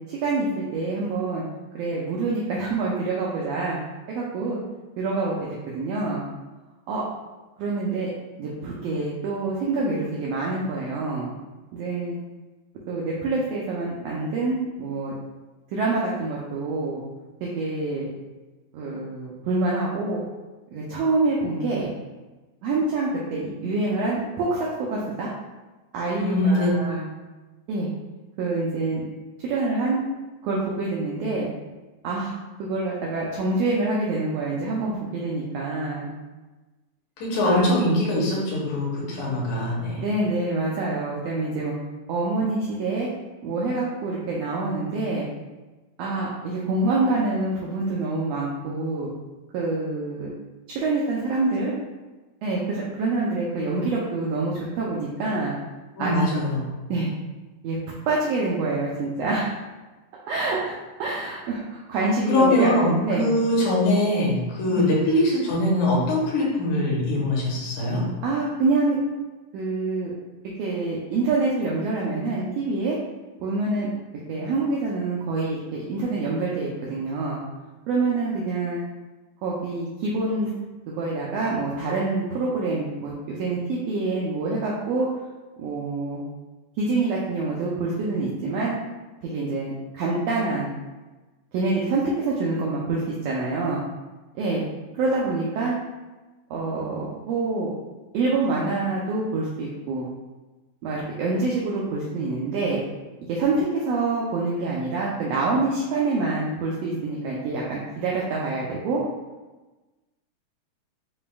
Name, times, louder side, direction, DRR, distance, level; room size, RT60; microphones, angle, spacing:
voice 1, 0.1-1.4 1.7-3.8 4.1-4.6 5.0-6.2 6.9-7.0 7.6-8.1 8.4-11.3 11.7-12.2 12.9-15.1 15.7-17.0 17.4-18.1 18.7-20.2 20.7-21.9 22.6-25.3 25.9-27.1 27.7-27.9 28.4-29.0 29.4-30.0 30.4-31.5 32.0-32.3 32.6-36.1 37.4-37.7 40.0-41.7 42.1-43.1 43.4-45.3 46.0-49.1 49.5-50.3 50.7-51.7 52.4-55.5 56.0-56.1 56.9-57.1 57.6-57.8 58.1-59.5 60.3-62.7 63.0-63.3 64.7-64.9 68.2-69.0 69.5-70.1 70.6-73.0 73.4-73.9 74.3-77.4 77.9-78.8 79.4-80.5 80.9-85.1 85.6-86.2 86.8-88.7 89.2-90.7 91.5-93.8 94.3-94.6 94.9-95.8 96.5-97.7 98.1-100.1 100.8-102.8 103.3-109.0, right 3 dB, 80° right, -4 dB, 1.5 m, -26 dB
voice 2, 26.2-26.7 37.2-40.0 56.0-56.7 62.3-68.0, left 1 dB, 75° left, -5 dB, 2.5 m, -22 dB
7.1 x 2.5 x 2.2 m, 1.2 s
omnidirectional pair, 3.4 m